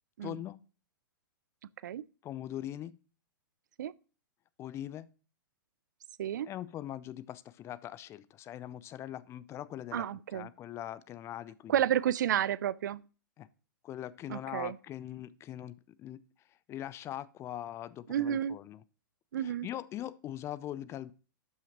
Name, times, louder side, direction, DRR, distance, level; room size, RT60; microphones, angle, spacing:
voice 1, 0.2-0.6 2.2-3.0 4.6-5.1 6.5-10.1 10.3-11.7 13.4-13.5 13.8-16.2 16.7-18.8 19.4-21.1, left 12 dB, 25° left, 0.5 m, -41 dB
voice 2, 9.9-10.5 11.7-13.0 14.3-14.8 18.1-18.6 19.3-19.7, right 10 dB, 60° right, 0.4 m, -31 dB
12.0 x 5.7 x 3.0 m
figure-of-eight pair, 110°, 11 cm